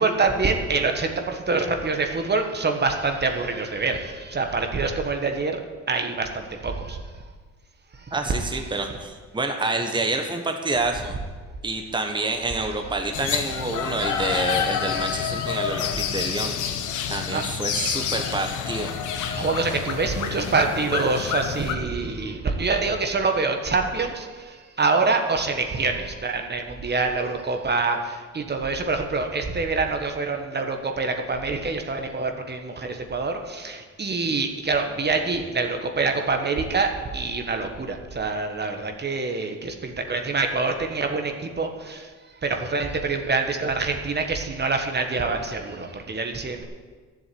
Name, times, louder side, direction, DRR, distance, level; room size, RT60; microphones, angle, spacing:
voice 1, 0.0-5.6 5.9-7.0 7.9-8.1 12.3-12.4 17.3-17.4 19.3-42.1 42.4-46.6, right 3 dB, 35° right, 5 dB, 1.4 m, -26 dB
voice 2, 8.1-11.2 11.6-16.6 17.1-18.9, right 2 dB, 15° right, 4 dB, 1.3 m, -28 dB
sound 1, 13.1-21.7, left 8 dB, 85° left, 1.2 m, -28 dB
12.0 x 7.7 x 8.6 m, 1.5 s
cardioid pair, 90°, 30 cm